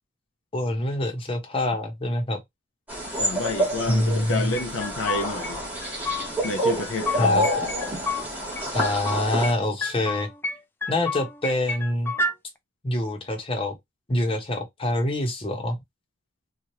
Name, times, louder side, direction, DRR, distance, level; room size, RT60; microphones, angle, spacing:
voice 1, 0.5-2.4 3.9-4.6 7.2-7.5 8.7-10.3 10.9-12.1 12.8-13.7 14.1-15.8, left 1 dB, 30° left, 0.9 m, -25 dB
sound 1, 2.9-9.5, equal, 10° right, 1.3 m, -28 dB
voice 2, 3.2-5.6 6.4-7.5, left 2 dB, 70° left, 0.5 m, -29 dB
sound 2, 4.6-5.5 5.8-6.5 6.8-8.3 8.6-9.5 9.8-10.6 10.8-12.3, left 3 dB, 10° left, 0.4 m, -30 dB
3.0 x 2.3 x 2.7 m
head